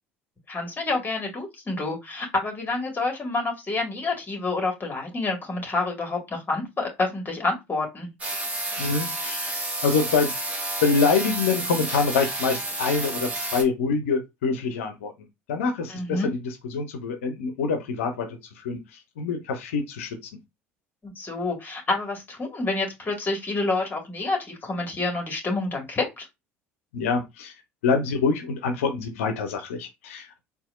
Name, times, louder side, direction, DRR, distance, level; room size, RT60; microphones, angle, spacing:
voice 1, 0.5-8.1 15.9-16.3 21.0-26.3, left 3 dB, 25° left, 1.9 m, -28 dB
sound 1, 8.2-13.6, right 2 dB, 20° right, 1.3 m, -30 dB
voice 2, 8.8-10.3 10.8-15.1 15.5-16.2 16.7-18.3 18.6-18.8 19.2-20.2 26.9-27.5 27.8-30.4, left 5 dB, 75° left, 0.6 m, -25 dB
4.1 x 2.4 x 2.4 m
figure-of-eight pair, 60°, 7 cm